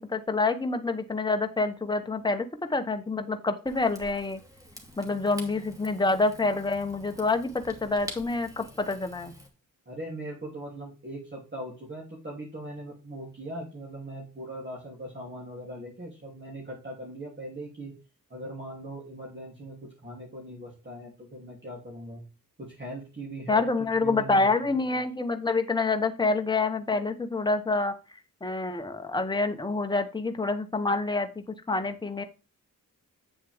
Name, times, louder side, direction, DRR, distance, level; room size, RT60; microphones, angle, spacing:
voice 1, 0.0-4.4 5.0-9.3 23.5-27.9 28.4-31.3 31.7-32.2, left 3 dB, 15° left, 6 dB, 1.1 m, -27 dB
Rain / Fire, 3.7-9.5, equal, 10° right, 2.7 m, -47 dB
voice 2, 9.9-18.0 18.3-22.2 22.6-24.7, right 1 dB, 35° right, -4 dB, 3.0 m, -40 dB
8.4 x 7.1 x 3.5 m, 0.31 s
cardioid pair, 85°, 34 cm